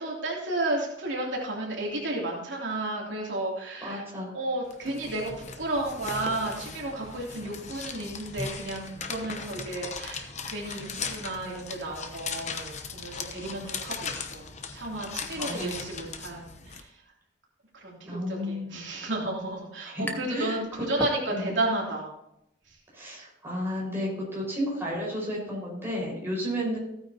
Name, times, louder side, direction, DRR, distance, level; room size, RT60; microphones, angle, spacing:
voice 1, 0.0-4.0 4.3-16.9 17.8-22.1, right 2 dB, 75° right, -3 dB, 3.1 m, -32 dB
voice 2, 3.8-4.3 15.3-15.8 18.1-18.6 19.9-20.9 21.3-21.5 22.9-26.8, equal, 15° right, -4 dB, 5.0 m, -32 dB
sound 1, 4.7-16.8, left 5 dB, 40° left, 0.9 m, -38 dB
sound 2, 20.1-20.5 20.8-21.7, left 1 dB, 10° left, 0.9 m, -37 dB
15.5 x 9.3 x 2.9 m, 0.80 s
head